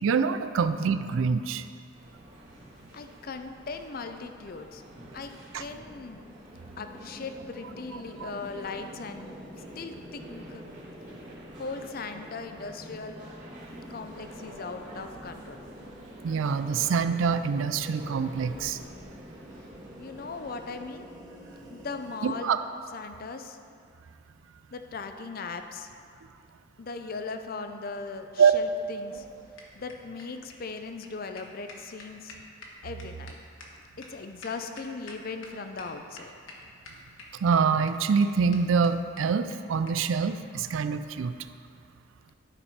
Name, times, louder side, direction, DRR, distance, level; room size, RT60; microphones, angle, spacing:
voice 1, 0.0-1.6 5.5-5.6 8.2-8.3 16.2-18.8 22.2-22.6 28.4-28.5 37.4-41.3, right 6 dB, 75° right, 11 dB, 0.4 m, -25 dB
sound 1, 1.9-20.8, equal, 40° right, 1.8 m, -49 dB
voice 2, 2.9-4.8 5.1-5.3 5.6-6.2 6.8-9.4 9.8-10.6 11.6-13.2 13.9-15.6 20.0-21.1 21.7-22.6 22.9-23.6 24.7-25.9 26.8-29.2 29.8-32.4 32.8-33.4 34.0-36.3, left 4 dB, 45° left, 7 dB, 0.5 m, -38 dB
sound 2, 4.9-22.2, equal, 20° right, 1.4 m, -48 dB
sound 3, 28.8-35.5 35.8-35.9 36.1-36.6 36.8-37.6 37.9-38.0 38.2-38.3 38.5-38.6 38.8-38.9 39.2-39.3 39.5-39.6 39.9-40.0 40.2-40.3 41.1-41.3, left 3 dB, 75° left, 1.3 m, -48 dB
12.0 x 5.3 x 4.2 m, 2.4 s
head